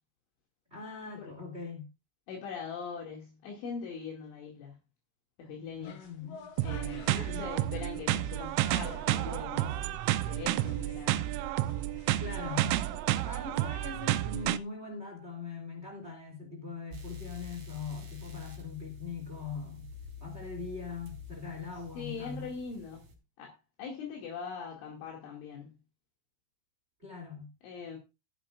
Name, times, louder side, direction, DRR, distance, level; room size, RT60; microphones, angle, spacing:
voice 1, 0.7-1.9 5.8-6.5 7.1-7.5 12.2-12.8 13.2-19.9 20.2-22.5 27.0-27.5, left 4 dB, 20° right, 1.8 m, -41 dB
voice 2, 2.3-4.7 5.4-6.1 6.6-10.0 10.3-11.2 22.0-23.1 23.4-25.8 27.6-28.0, left 6 dB, 70° left, 4.6 m, -42 dB
sound 1, 5.7-14.7, left 5 dB, 90° left, 1.6 m, -53 dB
sound 2, 6.6-14.6, right 14 dB, 80° right, 2.9 m, -31 dB
sound 3, 16.9-23.1, left 6 dB, 45° right, 4.8 m, -47 dB
15.0 x 12.0 x 2.5 m
omnidirectional pair, 5.9 m